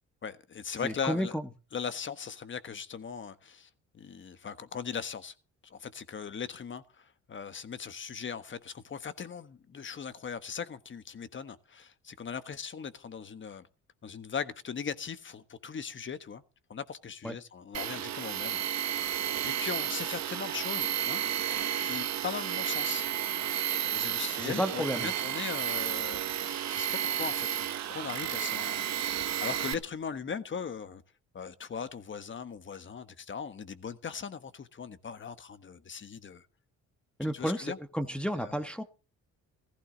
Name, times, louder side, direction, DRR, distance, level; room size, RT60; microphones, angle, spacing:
voice 1, 0.2-1.4 1.7-5.3 5.6-13.7 14.0-16.4 16.7-19.2 19.6-21.2 21.5-23.1 23.8-31.0 31.3-36.4 37.2-37.8 38.3-38.6, left 6 dB, 40° left, 1.4 m, -39 dB
voice 2, 0.8-1.4 17.2-17.3 24.4-25.1 37.2-38.8, equal, 5° left, 1.2 m, -32 dB
Tools, 17.7-29.7, right 11 dB, 65° right, 1.1 m, -32 dB
15.5 x 15.0 x 3.9 m
cardioid pair, 90°, 30 cm